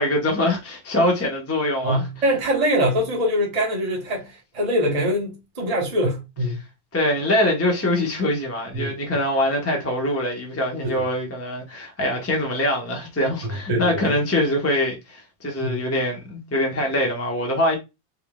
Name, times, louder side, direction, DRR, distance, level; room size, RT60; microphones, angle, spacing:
voice 1, 0.0-2.1 6.9-17.8, left 1 dB, 20° left, 0.4 m, -23 dB
voice 2, 1.8-6.6 8.7-8.9 10.8-11.0 13.4-14.2 15.5-15.8, equal, 35° right, 0.6 m, -24 dB
4.3 x 3.5 x 2.3 m
omnidirectional pair, 2.2 m